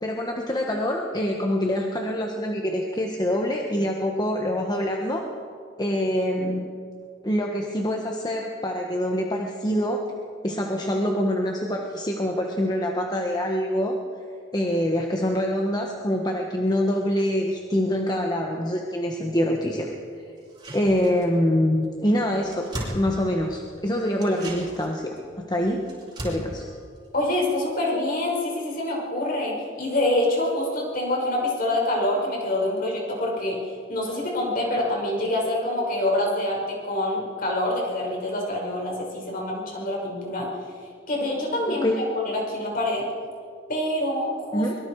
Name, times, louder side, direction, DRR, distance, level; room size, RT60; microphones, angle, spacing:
voice 1, 0.0-5.3 5.8-6.7 7.2-10.0 10.4-14.0 14.5-19.9 20.2-20.3 20.7-25.9 26.2-26.6 41.7-42.0 44.5-44.7, equal, 20° left, 1 dB, 1.4 m, -25 dB
sound 1, 20.4-21.5 21.8-21.9 22.2-23.7 24.1-27.9 28.2-28.3, right 1 dB, 25° right, 5.6 m, -38 dB
voice 2, 27.1-33.6 33.9-40.5 41.1-41.9 42.2-43.1 43.7-44.7, left 1 dB, 50° left, -2 dB, 6.1 m, -26 dB
24.0 x 22.5 x 4.9 m, 2.2 s
head